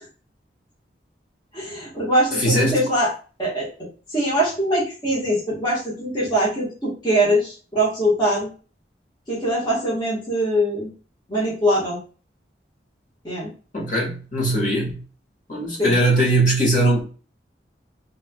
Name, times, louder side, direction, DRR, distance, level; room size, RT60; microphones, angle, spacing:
voice 1, 1.5-3.1 3.4-3.7 4.1-8.5 9.3-10.9 11.3-12.0 13.2-13.5 15.8-15.9, equal, 25° left, 1.2 m, -22 dB
voice 2, 2.4-2.8 13.7-15.0 15.5-17.0, right 1 dB, 45° left, 1.5 m, -20 dB
3.5 x 3.2 x 2.2 m
head